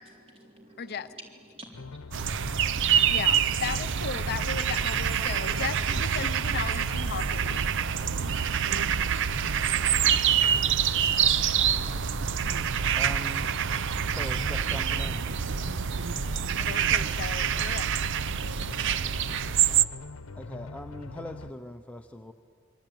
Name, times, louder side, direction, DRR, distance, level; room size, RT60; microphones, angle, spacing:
voice 1, 0.0-3.5 3.8-6.7 17.8-19.5, equal, 25° right, 1 dB, 3.8 m, -52 dB
voice 2, 0.8-1.1 3.1-7.7 16.6-17.9, left 6 dB, 50° left, 12 dB, 0.6 m, -36 dB
sound 1, 1.7-21.5, left 3 dB, 75° left, 0.8 m, -43 dB
sound 2, 2.1-19.8, right 8 dB, 60° right, 0.6 m, -26 dB
voice 3, 13.0-13.5 14.1-15.3 20.4-22.3, equal, 5° left, 5 dB, 0.7 m, -40 dB
28.0 x 23.5 x 9.1 m, 2.6 s
head